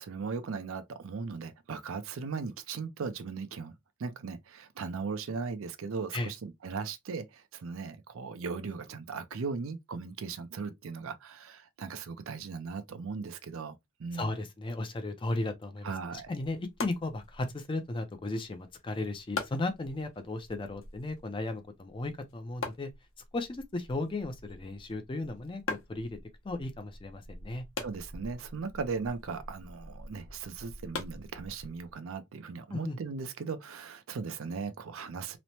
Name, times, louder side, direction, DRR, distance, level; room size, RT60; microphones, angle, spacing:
voice 1, 0.0-3.7 4.0-13.7 14.0-14.4 15.8-16.3 27.8-35.4, right 5 dB, 65° right, 0.4 m, -38 dB
voice 2, 14.1-22.9 23.3-26.2 26.4-27.6 32.7-33.0, left 2 dB, 25° left, 0.4 m, -35 dB
sound 1, 16.1-31.9, left 3 dB, 65° left, 0.8 m, -44 dB
3.0 x 2.0 x 2.7 m
head